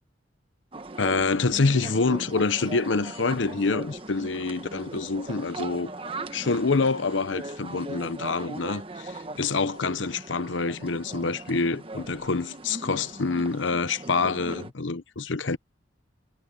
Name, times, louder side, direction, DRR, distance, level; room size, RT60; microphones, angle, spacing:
sound 1, 0.7-14.7, right 2 dB, 30° right, 1.2 m, -39 dB
voice 1, 1.0-5.9 6.3-15.6, left 4 dB, 85° left, 0.9 m, -26 dB
head